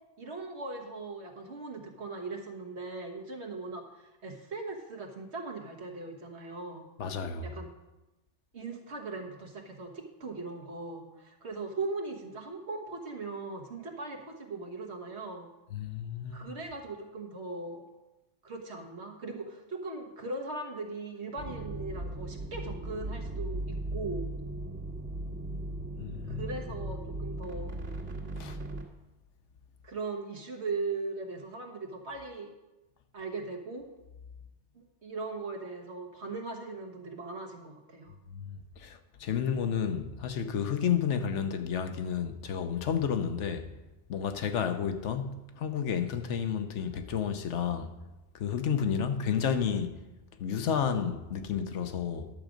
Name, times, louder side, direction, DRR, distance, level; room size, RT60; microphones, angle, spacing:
voice 1, 0.2-6.9 7.4-7.7 8.5-15.5 16.3-17.9 18.4-24.3 26.3-27.8 29.8-32.5 33.1-33.9 34.7-38.1, right 3 dB, 70° right, 1.6 m, -39 dB
voice 2, 7.0-7.5 15.7-16.5 26.0-26.4 28.4-28.6 38.3-43.7 44.1-47.9 48.4-50.0 50.4-52.3, left 7 dB, 80° left, 1.1 m, -31 dB
sound 1, 21.4-28.8, right 2 dB, 90° right, 2.0 m, -37 dB
11.0 x 7.3 x 5.1 m
omnidirectional pair, 1.2 m